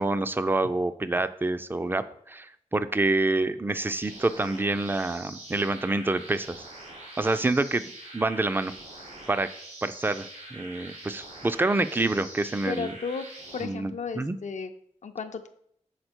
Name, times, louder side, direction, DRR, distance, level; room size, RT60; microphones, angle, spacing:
voice 1, 0.0-6.6 7.2-8.7 9.3-9.5 9.8-12.9 13.6-14.4, right 2 dB, 15° right, 12 dB, 0.4 m, -27 dB
sound 1, 4.0-13.6, right 1 dB, 80° right, 2.2 m, -44 dB
voice 2, 12.7-13.3 13.5-14.7 15.0-15.5, left 5 dB, 70° left, 7 dB, 0.6 m, -34 dB
6.6 x 4.2 x 4.4 m, 0.67 s
wide cardioid pair, 100°, 13 cm